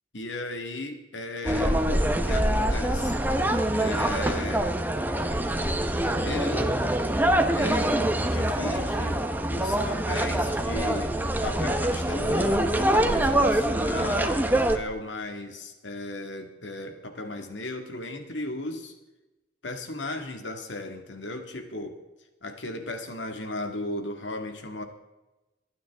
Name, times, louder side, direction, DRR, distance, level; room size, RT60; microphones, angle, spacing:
voice 1, 0.1-1.8 2.2-3.2 3.8-4.7 6.3-6.8 7.6-7.9 8.2-9.2 9.5-11.1 11.4-18.9 19.6-22.0 22.4-24.8, left 2 dB, 85° left, 5 dB, 1.9 m, -36 dB
sound 1, 1.4-14.8, right 1 dB, 10° right, 1.0 m, -24 dB
27.5 x 9.2 x 3.6 m, 1.1 s
head